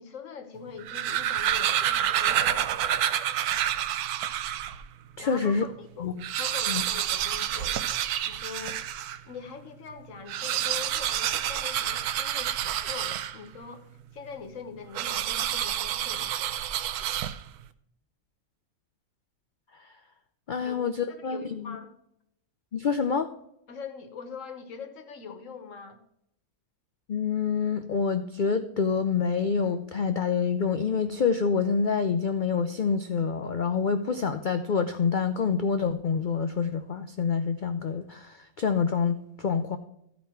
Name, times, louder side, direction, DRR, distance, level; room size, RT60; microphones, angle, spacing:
voice 1, 0.0-3.1 5.2-8.8 9.3-16.5 20.6-20.8 21.1-21.9 23.7-26.0, left 6 dB, 60° left, 8 dB, 1.3 m, -43 dB
sound 1, 0.7-4.8 5.4-5.5 5.7-5.8 6.1-9.2 10.2-13.6 14.9-17.6, right 11 dB, 85° right, 1.1 m, -28 dB
voice 2, 5.2-5.6 6.0-6.1 6.7-6.8 20.5-21.8 22.7-23.3 27.1-39.8, left 5 dB, 80° left, 8 dB, 0.4 m, -27 dB
13.5 x 5.2 x 4.4 m, 0.77 s
omnidirectional pair, 1.6 m